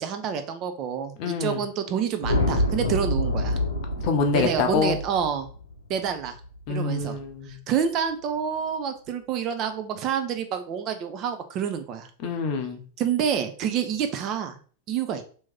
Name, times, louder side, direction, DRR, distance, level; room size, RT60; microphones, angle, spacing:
voice 1, 0.0-3.6 4.3-5.5 5.9-6.4 6.7-7.2 7.5-12.1 13.0-14.6 14.9-15.2, right 8 dB, 35° right, 8 dB, 0.4 m, -28 dB
voice 2, 1.2-1.6 4.0-5.0 6.7-7.6 12.2-12.8, left 4 dB, 45° left, 5 dB, 0.6 m, -25 dB
sound 1, 2.2-6.6, left 1 dB, 80° left, 0.7 m, -27 dB
3.0 x 2.7 x 3.5 m, 0.42 s
figure-of-eight pair, 90°, 0 cm